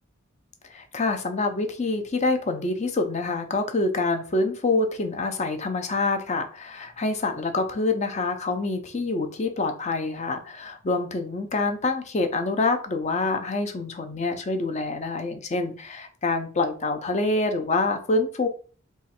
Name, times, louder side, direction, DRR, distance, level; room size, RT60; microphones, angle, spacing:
voice 1, 0.7-18.5, left 3 dB, 35° left, 6 dB, 0.6 m, -26 dB
3.1 x 2.4 x 4.2 m, 0.39 s
head